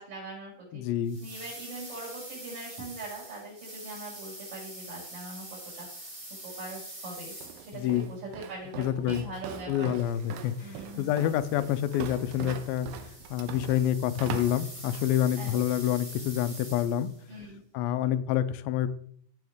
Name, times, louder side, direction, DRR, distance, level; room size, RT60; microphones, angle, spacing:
voice 1, 0.0-0.8 1.2-5.5 5.7-6.1 6.4-9.9 10.6-11.1 15.4-15.6 17.3-17.6, right 2 dB, 40° right, -5 dB, 6.0 m, -42 dB
voice 2, 0.7-1.2 7.7-8.1 8.8-9.3 9.7-12.9 13.3-17.1 17.7-18.9, left 11 dB, 80° left, 13 dB, 2.3 m, -27 dB
sound 1, 1.1-8.1 10.0-17.2, right 1 dB, 10° right, 1.5 m, -45 dB
Walk footsteps, 7.4-15.2, right 9 dB, 80° right, 2.4 m, -41 dB
15.5 x 6.0 x 3.6 m, 0.62 s
omnidirectional pair, 4.3 m